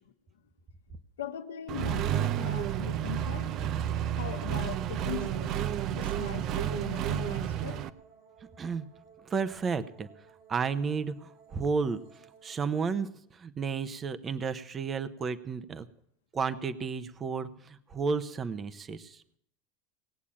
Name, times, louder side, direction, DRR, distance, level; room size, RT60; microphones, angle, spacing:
voice 1, 1.2-3.5 4.1-5.6 5.9-7.9, left 9 dB, 90° left, 1.1 m, -40 dB
Accelerating revving vroom, 1.7-7.9, right 10 dB, 55° right, 0.7 m, -31 dB
sound 1, 7.0-13.0, right 6 dB, 70° right, 2.9 m, -58 dB
voice 2, 9.2-10.1 10.5-12.0 12.4-15.9 16.3-19.2, right 5 dB, 30° right, 1.0 m, -32 dB
18.5 x 7.3 x 8.6 m
hypercardioid pair, 95°, 0 cm